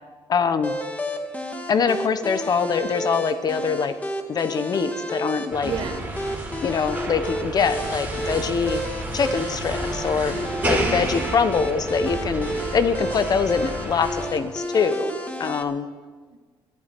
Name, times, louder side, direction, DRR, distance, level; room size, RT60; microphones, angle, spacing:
voice 1, 0.3-0.8 1.7-3.9 4.3-5.7 6.6-8.8 9.1-10.4 10.6-15.1 15.4-15.9, left 5 dB, 40° left, 11 dB, 0.9 m, -23 dB
sound 1, 0.6-15.6, equal, 15° left, 1.5 m, -32 dB
sound 2, 5.5-14.3, right 1 dB, 15° right, 3.4 m, -31 dB
voice 2, 5.6-6.1 10.3-10.9 12.5-12.8 15.0-15.6 16.3-16.4, right 6 dB, 55° right, 8 dB, 1.3 m, -35 dB
22.5 x 12.0 x 4.5 m, 1.4 s
cardioid pair, 135°, 10 cm